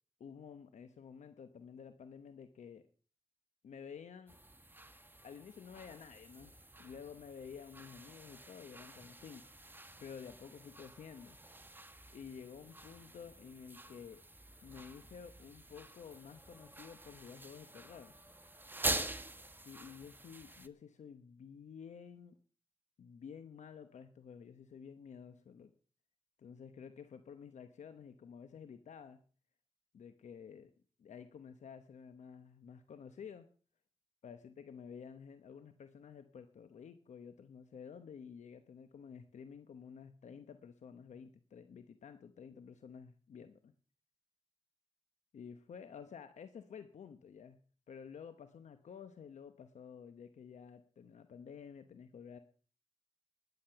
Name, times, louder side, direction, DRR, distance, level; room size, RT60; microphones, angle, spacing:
voice 1, 0.2-2.8 3.6-4.4 5.2-6.5 6.8-9.5 10.0-11.4 12.1-14.2 14.6-18.1 19.6-22.4 23.0-25.7 26.4-29.2 29.9-30.7 31.0-33.5 34.2-43.7 45.3-47.6 47.9-52.4, left 7 dB, 85° left, 10 dB, 0.9 m, -51 dB
sound 1, 4.3-20.7, right 1 dB, 15° right, 1.4 m, -46 dB
14.5 x 10.5 x 5.8 m, 0.42 s
cardioid pair, 45°, 12 cm